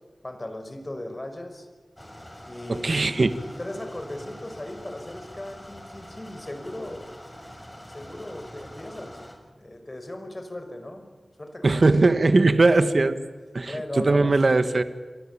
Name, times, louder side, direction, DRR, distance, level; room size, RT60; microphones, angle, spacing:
voice 1, 0.2-1.7 2.4-3.1 3.4-7.1 7.8-9.2 9.5-11.1 11.4-11.8 13.7-14.4, left 1 dB, 35° left, 7 dB, 5.8 m, -37 dB
sound 1, 2.0-9.3, equal, 15° left, 7.2 m, -44 dB
voice 2, 2.7-3.3 11.6-13.2 13.5-14.8, right 3 dB, 65° right, 11 dB, 1.5 m, -20 dB
29.0 x 23.5 x 8.7 m, 1.3 s
cardioid pair, 45°, 0 cm